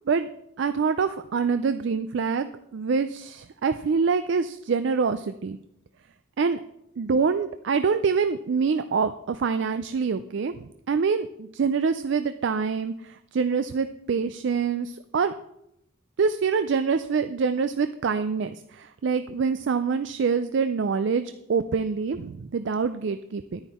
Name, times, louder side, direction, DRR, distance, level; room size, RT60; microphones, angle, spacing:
voice 1, 0.6-5.6 6.4-6.6 7.0-15.3 16.2-23.6, right 5 dB, 55° right, 11 dB, 0.4 m, -25 dB
10.0 x 9.6 x 4.2 m, 0.80 s
head